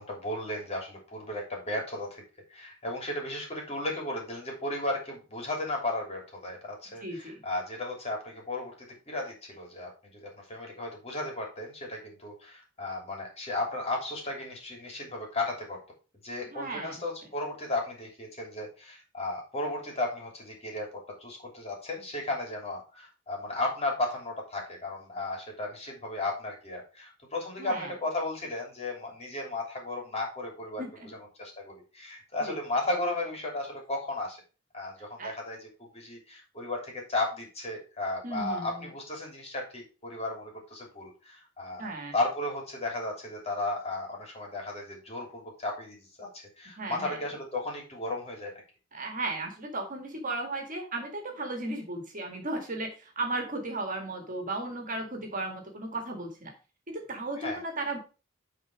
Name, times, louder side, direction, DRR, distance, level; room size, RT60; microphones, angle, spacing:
voice 1, 0.0-2.2 2.5-15.8 16.2-30.8 31.4-34.4 34.7-41.9 42.1-48.5 57.4-57.6, left 2 dB, 30° left, 0 dB, 3.1 m, -35 dB
voice 2, 7.0-7.4 16.5-17.0 27.6-27.9 30.8-31.1 32.5-32.6 35.2-35.3 38.2-38.9 41.8-42.1 46.8-47.2 48.9-56.5 56.9-58.0, right 2 dB, 45° right, 3 dB, 2.0 m, -35 dB
9.7 x 4.1 x 4.9 m, 0.34 s
head